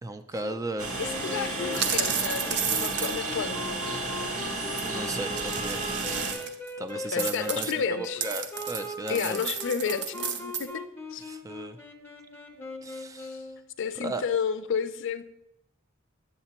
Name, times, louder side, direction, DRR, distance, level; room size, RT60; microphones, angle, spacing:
voice 1, 0.0-0.9 4.7-5.8 6.8-9.5 11.2-11.8 12.8-13.4 13.9-14.3, right 2 dB, 15° right, 9 dB, 0.3 m, -35 dB
Train, 0.8-6.3, right 2 dB, 80° right, 1.2 m, -32 dB
voice 2, 1.0-3.8 7.1-8.2 9.1-10.8 11.1-11.2 13.2-13.4 13.8-15.2, left 6 dB, 60° left, 11 dB, 0.4 m, -31 dB
sound 1, 1.0-13.6, left 2 dB, 10° left, 0.7 m, -39 dB
sound 2, 1.7-3.4 4.8-4.9 5.4-6.7 7.2-10.6, right 7 dB, 55° right, 0.6 m, -32 dB
8.0 x 7.6 x 2.9 m, 0.84 s
head